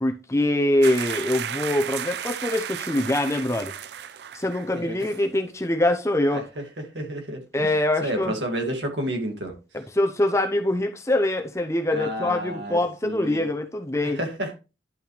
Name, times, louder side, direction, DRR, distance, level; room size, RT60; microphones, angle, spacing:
voice 1, 0.0-3.7 4.3-6.5 7.5-8.3 9.7-14.2, left 1 dB, 15° left, 0.8 m, -24 dB
sound 1, 0.8-4.7 5.0-5.2, right 9 dB, 70° right, 0.4 m, -34 dB
voice 2, 4.7-5.1 6.3-6.4 6.9-7.7 8.0-9.5 11.9-13.5 14.0-14.5, right 1 dB, 85° right, 2.4 m, -30 dB
10.5 x 5.5 x 3.3 m
head